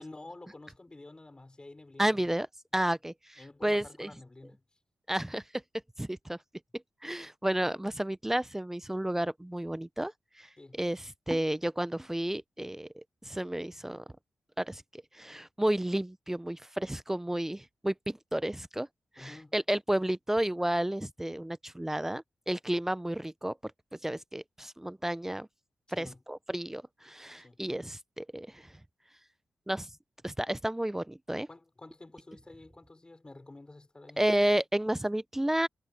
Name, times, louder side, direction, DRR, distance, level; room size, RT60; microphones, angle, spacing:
voice 1, 0.0-2.2 3.4-4.6 10.6-10.8 19.2-19.6 25.9-26.2 27.4-27.6 31.5-34.2, left 2 dB, 20° left, 5.2 m, -50 dB
voice 2, 2.0-2.5 2.7-4.1 5.1-5.6 6.0-6.4 7.0-10.5 10.8-14.0 14.6-18.9 19.2-23.6 24.0-25.5 26.0-28.7 29.7-29.9 30.2-31.5 34.2-35.7, right 1 dB, 10° right, 0.4 m, -32 dB
wide cardioid pair, 110°, 4 cm